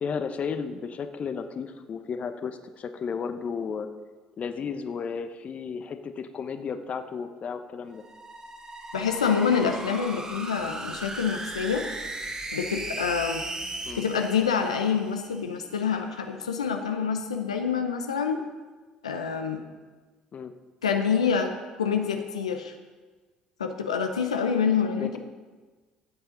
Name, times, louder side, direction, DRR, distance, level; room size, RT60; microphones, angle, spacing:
voice 1, 0.0-3.9 4.4-8.0 13.8-14.0 20.3-20.5 25.0-25.2, left 6 dB, 45° left, 9 dB, 0.8 m, -33 dB
sound 1, 7.9-15.4, right 2 dB, 25° right, 1.3 m, -37 dB
voice 2, 8.9-11.8 12.5-13.4 14.0-18.4 19.0-19.6 20.8-21.5 21.8-22.7 23.6-25.2, left 6 dB, 90° left, 5 dB, 0.7 m, -26 dB
16.0 x 8.0 x 3.9 m, 1.3 s
hypercardioid pair, 60°, 3 cm